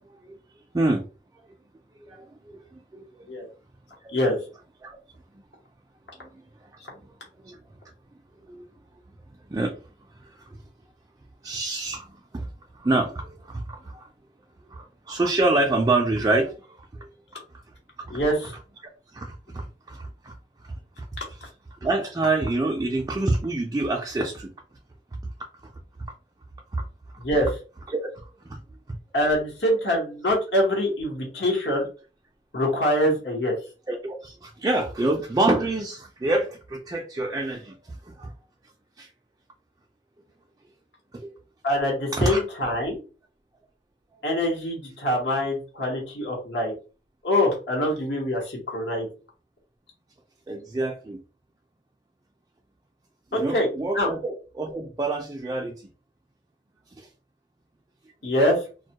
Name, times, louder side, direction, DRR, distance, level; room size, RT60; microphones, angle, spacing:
voice 1, 2.0-2.6 2.9-3.2 4.8-4.9 7.4-7.6 8.5-8.6 9.5-9.7 11.4-12.5 12.8-14.1 14.7-16.5 18.0-18.2 19.1-20.3 21.8-24.5 26.7-26.8 27.9-28.0 33.9-37.8 38.2-38.3 39.0-39.1 41.1-41.3 42.1-42.4 50.5-51.2 53.3-55.7 57.0-57.1, right 2 dB, 20° right, 0 dB, 0.3 m, -26 dB
voice 2, 18.1-18.5 27.2-27.5 29.1-31.9 32.5-33.5 41.6-43.0 44.2-46.7 47.2-49.1 53.3-53.7 53.9-54.1 58.2-58.6, left 1 dB, 70° left, 0 dB, 1.0 m, -24 dB
2.2 x 2.1 x 2.8 m, 0.34 s
head